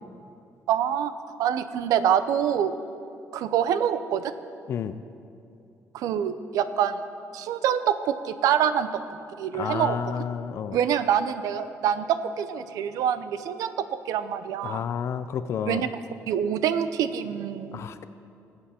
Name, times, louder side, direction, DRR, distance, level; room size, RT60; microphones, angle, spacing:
voice 1, 0.7-2.7 3.3-4.3 5.9-7.0 7.3-9.0 9.4-10.0 10.7-13.7 14.1-14.8 15.7-15.9 16.3-17.8, right 9 dB, 90° right, 12 dB, 0.6 m, -25 dB
voice 2, 4.7-5.0 9.5-10.8 14.6-15.9 17.7-18.0, left 8 dB, 50° left, 12 dB, 0.4 m, -31 dB
20.0 x 7.9 x 4.3 m, 2.6 s
cardioid pair, 160°, 6 cm